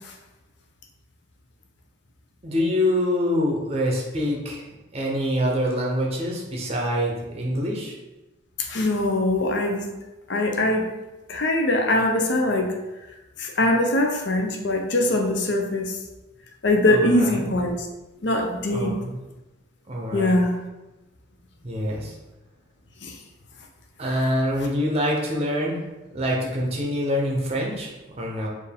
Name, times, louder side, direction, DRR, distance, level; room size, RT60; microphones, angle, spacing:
voice 1, 2.4-4.6 4.9-7.9 16.9-17.5 18.7-19.2 19.9-20.4 21.6-22.2 24.0-25.8 26.1-28.5, equal, 30° right, -2 dB, 0.6 m, -25 dB
voice 2, 8.7-9.8 10.3-10.9 11.3-12.7 13.4-15.9 16.6-17.7 18.2-19.0 20.1-20.5 23.0-23.1, left 1 dB, 60° left, 2 dB, 0.6 m, -22 dB
4.4 x 2.6 x 3.4 m, 1.1 s
head